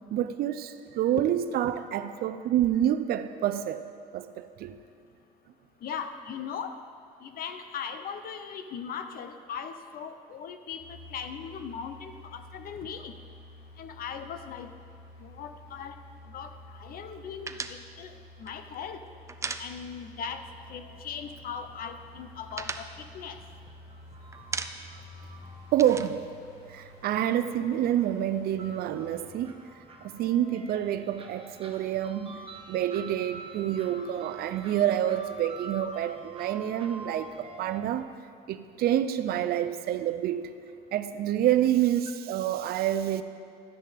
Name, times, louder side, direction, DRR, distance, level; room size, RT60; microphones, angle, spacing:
voice 1, 0.1-3.8 4.1-4.8 25.7-26.2 26.7-29.6 30.0-38.1 38.5-40.5 40.9-43.2, right 11 dB, 65° right, 0.6 m, -28 dB
voice 2, 5.8-6.7 7.2-10.8 11.1-13.1 13.8-14.7 15.2-15.9 16.3-16.5 16.8-18.1 18.4-19.0 19.6-20.4 20.7-23.4, left 7 dB, 60° left, 0.8 m, -39 dB
sound 1, 10.8-29.3, left 1 dB, 85° left, 2.1 m, -50 dB
sound 2, 17.5-20.2 20.5-20.7 21.0-21.7 22.0-24.0 24.3-25.1 25.3-27.2, right 4 dB, 15° right, 0.4 m, -38 dB
sound 3, 20.3-37.8, right 2 dB, 35° right, 1.1 m, -49 dB
12.5 x 10.0 x 3.5 m
cardioid pair, 110°, 17 cm